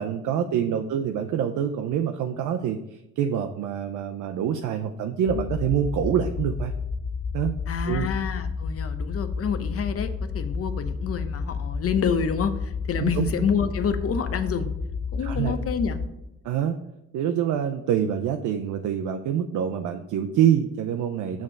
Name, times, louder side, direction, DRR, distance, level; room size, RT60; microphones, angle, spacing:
voice 1, 0.0-6.7 7.3-7.5 7.9-8.1 13.0-13.3 15.2-15.6 16.4-16.8 17.1-21.4, right 9 dB, 75° right, 5 dB, 0.5 m, -26 dB
sound 1, 5.3-16.1, left 5 dB, 25° left, 0.4 m, -31 dB
voice 2, 7.7-14.7 15.1-16.0, left 6 dB, 50° left, 10 dB, 0.8 m, -28 dB
6.6 x 3.6 x 6.1 m, 0.88 s
cardioid pair, 90°, 30 cm